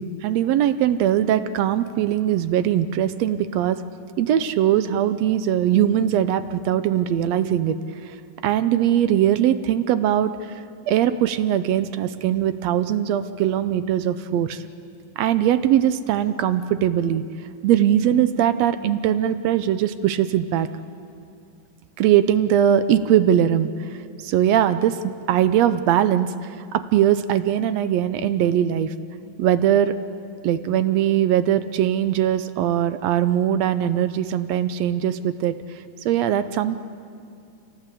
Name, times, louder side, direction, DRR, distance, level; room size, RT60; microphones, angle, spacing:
voice 1, 0.0-3.8 4.2-7.8 8.4-10.3 10.9-14.6 15.2-17.2 17.6-20.7 22.0-23.7 24.2-25.0 25.3-28.9 29.4-29.9 30.4-35.5 36.0-36.8, right 10 dB, 75° right, 12 dB, 1.7 m, -20 dB
27.0 x 17.0 x 8.4 m, 2.3 s
omnidirectional pair, 3.5 m